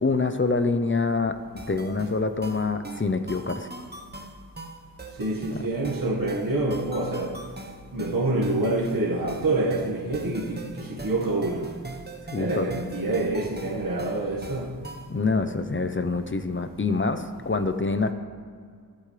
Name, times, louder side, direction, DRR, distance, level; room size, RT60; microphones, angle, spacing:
voice 1, 0.0-3.7 5.5-5.6 12.3-12.7 15.1-18.1, left 3 dB, 35° left, 0.8 m, -26 dB
sound 1, 1.6-15.2, right 2 dB, 30° right, 1.2 m, -41 dB
voice 2, 5.2-7.5 7.9-11.8 12.3-14.9, right 2 dB, 70° right, 1.8 m, -27 dB
24.0 x 8.5 x 3.4 m
wide cardioid pair, 70°, 35 cm